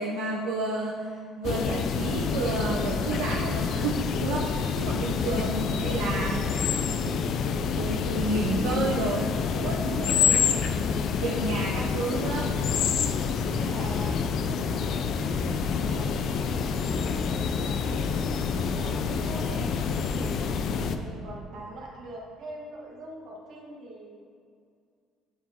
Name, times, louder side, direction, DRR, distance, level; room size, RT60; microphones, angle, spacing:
voice 1, 0.0-6.5 7.0-7.2 7.7-10.4 11.2-12.5, right 3 dB, 85° right, -3 dB, 0.6 m, -31 dB
sound 1, 1.4-21.0, left 6 dB, 65° left, 0.4 m, -27 dB
voice 2, 5.7-6.3 10.4-10.6 13.1-14.5 15.7-19.7 20.1-20.5 20.8-24.2, right 1 dB, 65° right, -2 dB, 1.5 m, -44 dB
10.0 x 4.6 x 2.9 m, 2.2 s
supercardioid pair, 75°, 0 cm